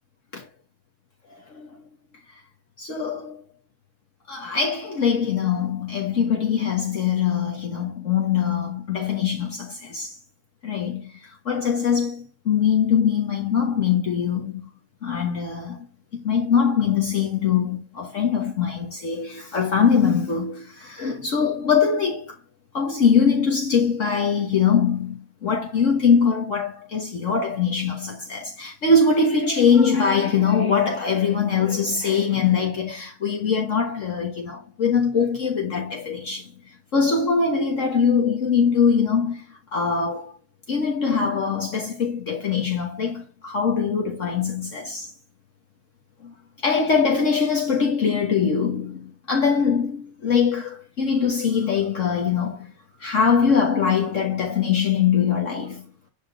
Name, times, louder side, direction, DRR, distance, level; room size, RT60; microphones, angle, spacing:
voice 1, 2.8-3.4 4.3-10.2 10.6-14.7 15.0-15.9 16.1-22.3 22.7-36.5 36.9-39.4 39.7-40.3 40.7-45.1 46.2-46.3 46.6-52.7 53.0-55.9, left 6 dB, 55° left, 1.7 m, -22 dB
11.0 x 4.0 x 7.0 m
omnidirectional pair, 1.6 m